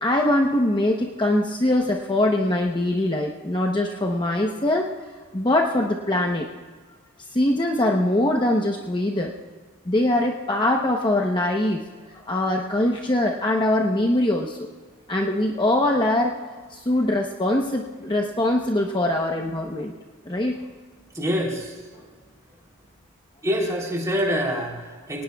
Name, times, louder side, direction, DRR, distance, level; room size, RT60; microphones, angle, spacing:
voice 1, 0.0-4.9 5.3-6.5 7.3-9.3 9.9-11.8 12.1-14.7 15.1-16.3 16.7-19.9 20.3-20.6, left 1 dB, 20° left, 1 dB, 0.9 m, -22 dB
voice 2, 21.1-22.1 23.4-25.2, equal, 15° right, -1 dB, 3.4 m, -26 dB
22.5 x 19.0 x 2.4 m, 1.5 s
head